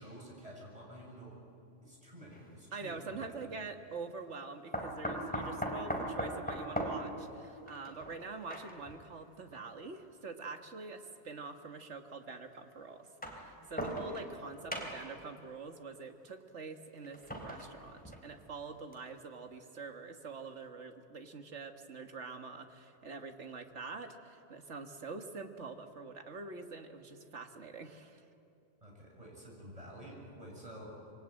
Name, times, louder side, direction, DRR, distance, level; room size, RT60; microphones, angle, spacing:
voice 1, 0.0-1.3 1.8-3.3 28.8-30.9, equal, 30° right, -2 dB, 7.3 m, -50 dB
sound 1, 2.3-2.4 4.7-9.0 10.0-10.1 11.3-11.4 13.0-14.4 14.7-15.2 17.0-18.4 18.9-19.0 19.4-19.5, equal, 5° left, 3.3 m, -39 dB
voice 2, 2.7-28.2, right 4 dB, 85° right, 6 dB, 1.9 m, -45 dB
26.0 x 23.5 x 9.0 m, 2.6 s
omnidirectional pair, 1.2 m